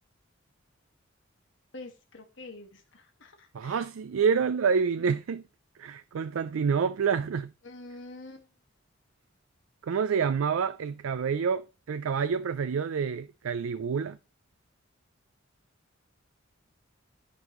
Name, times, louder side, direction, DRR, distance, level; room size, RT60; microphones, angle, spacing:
voice 1, 1.7-3.8 7.6-8.5, left 2 dB, 65° left, 1.7 m, -46 dB
voice 2, 3.5-5.4 5.8-7.5 9.8-14.2, right 6 dB, 90° right, 0.4 m, -28 dB
13.0 x 5.3 x 3.0 m
head